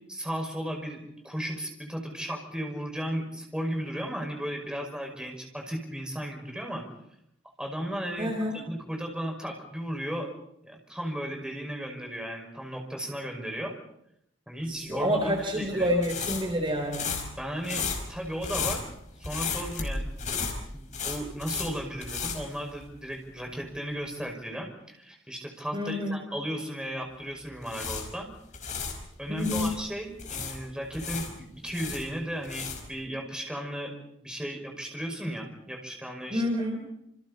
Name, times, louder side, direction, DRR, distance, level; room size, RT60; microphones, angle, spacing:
voice 1, 0.1-6.9 7.6-8.3 8.7-10.3 10.6-13.8 14.5-15.9 17.4-18.9 19.2-20.1 20.7-28.3 29.2-33.9 34.2-36.4, equal, 5° right, 2 dB, 5.7 m, -35 dB
voice 2, 8.2-8.6 14.7-17.1 25.7-26.2 29.3-29.7 36.3-36.8, equal, 25° right, 2 dB, 3.8 m, -28 dB
sound 1, 15.2-23.2 23.5-23.7 27.4-29.8 30.2-33.0, left 5 dB, 40° left, 5.2 m, -34 dB
29.0 x 28.5 x 4.2 m, 0.75 s
head